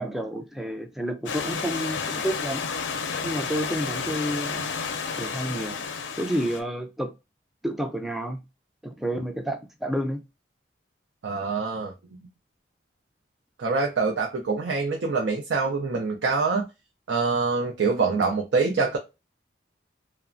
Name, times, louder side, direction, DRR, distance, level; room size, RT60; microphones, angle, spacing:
voice 1, 0.0-2.6 3.2-4.7 5.2-5.8 6.2-7.1 7.6-8.4 8.8-10.2, equal, ahead, 0.3 m, -30 dB
Stream / Liquid, 1.3-6.6, left 5 dB, 90° left, 0.5 m, -31 dB
voice 2, 11.2-11.9 13.6-16.7 17.1-19.0, right 4 dB, 80° right, 0.5 m, -25 dB
3.1 x 2.0 x 2.4 m
head